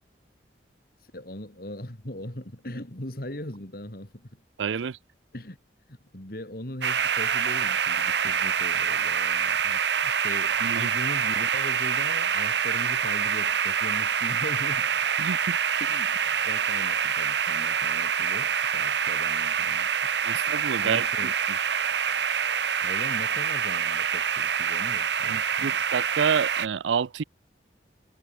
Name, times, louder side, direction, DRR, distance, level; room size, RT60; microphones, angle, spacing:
voice 1, 1.1-4.4 5.3-5.6 5.9-15.3 15.8-19.9 20.3-21.3 22.8-25.8, left 1 dB, 55° left, 3.0 m, -40 dB
voice 2, 4.6-5.0 10.5-10.9 15.2-15.4 20.2-21.1 25.3-27.2, right 6 dB, 90° right, 0.5 m, -28 dB
sound 1, 6.8-26.7, right 7 dB, 75° right, 1.3 m, -26 dB
head